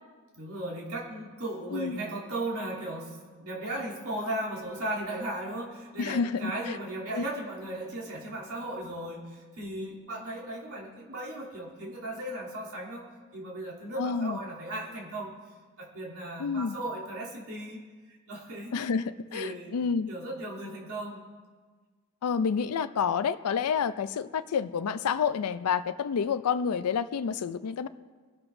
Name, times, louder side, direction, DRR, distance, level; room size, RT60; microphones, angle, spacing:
voice 1, 0.3-13.0 13.3-15.3 15.8-17.8 18.3-18.7 19.3-19.8 20.1-21.2, right 1 dB, 90° right, -5 dB, 3.1 m, -36 dB
voice 2, 6.0-6.8 7.1-7.2 14.0-14.4 16.4-16.7 18.7-20.1 22.2-27.9, left 6 dB, 85° left, 12 dB, 0.4 m, -29 dB
23.0 x 11.5 x 2.6 m, 1.5 s
head